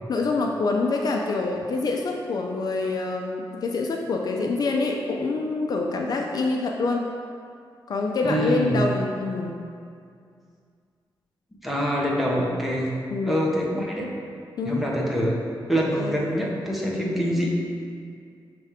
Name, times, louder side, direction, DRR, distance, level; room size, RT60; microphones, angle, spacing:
voice 1, 0.1-7.1 7.9-9.6 13.1-13.4 14.6-14.8 15.9-16.1, left 3 dB, 50° left, 1 dB, 0.4 m, -26 dB
voice 2, 8.2-8.8 11.6-12.9 13.2-14.1 14.6-15.4 15.7-17.5, equal, ahead, -4 dB, 0.8 m, -25 dB
6.0 x 3.3 x 4.9 m, 2.3 s
wide cardioid pair, 165°, 9 cm